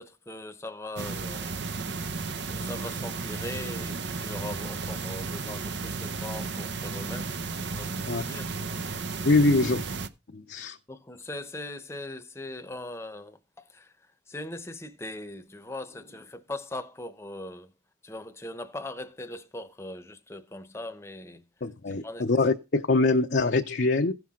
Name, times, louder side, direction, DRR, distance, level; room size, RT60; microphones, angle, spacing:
voice 1, 0.0-2.0 2.5-8.6 10.9-17.7 18.0-21.4 21.9-22.2, left 1 dB, 15° left, 0.9 m, -40 dB
sound 1, 1.0-10.1, right 4 dB, 65° right, 0.8 m, -34 dB
voice 2, 9.2-9.8 10.3-10.8 21.6-24.1, left 3 dB, 55° left, 0.7 m, -24 dB
16.0 x 5.9 x 3.7 m
head